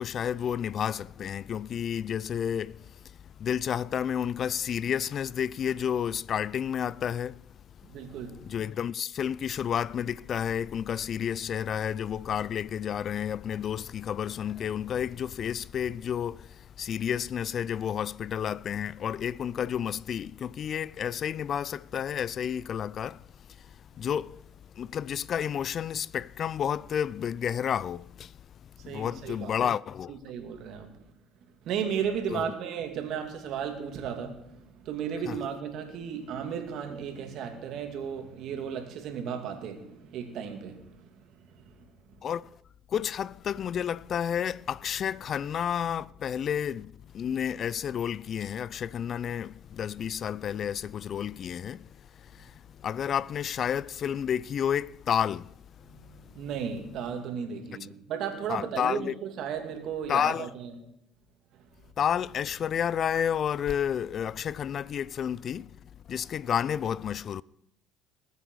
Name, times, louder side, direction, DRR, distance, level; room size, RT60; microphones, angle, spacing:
voice 1, 0.0-7.5 7.9-8.1 8.5-24.4 24.8-28.5 28.8-30.2 32.3-32.5 35.3-35.4 42.2-42.5 42.9-56.3 58.5-59.1 60.1-60.5 62.0-67.4, left 8 dB, 50° left, 0.4 m, -31 dB
voice 2, 7.8-8.4 28.8-29.7 30.1-30.9 31.6-41.1 41.4-41.7 56.0-60.7 61.5-61.6, right 7 dB, 60° right, 2.6 m, -35 dB
20.5 x 8.2 x 4.8 m
hypercardioid pair, 70°, 0 cm